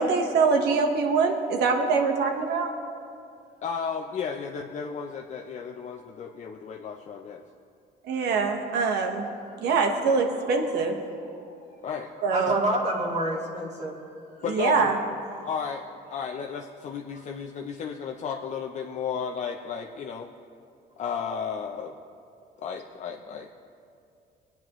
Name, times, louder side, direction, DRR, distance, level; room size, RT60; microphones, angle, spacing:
voice 1, 0.0-2.7 8.1-9.3 9.6-11.0 12.2-12.6 14.5-15.0, right 4 dB, 75° right, 3 dB, 1.3 m, -24 dB
voice 2, 3.6-7.4 11.8-12.1 12.4-12.5 14.4-14.9 15.4-15.8 16.1-20.3 21.0-21.9 22.6-23.5, left 6 dB, 45° left, 2 dB, 0.6 m, -33 dB
voice 3, 12.3-13.9 15.3-15.5 17.1-17.2, right 1 dB, 40° right, -1 dB, 2.0 m, -29 dB
20.0 x 9.0 x 3.1 m, 2.5 s
cardioid pair, 110°, 17 cm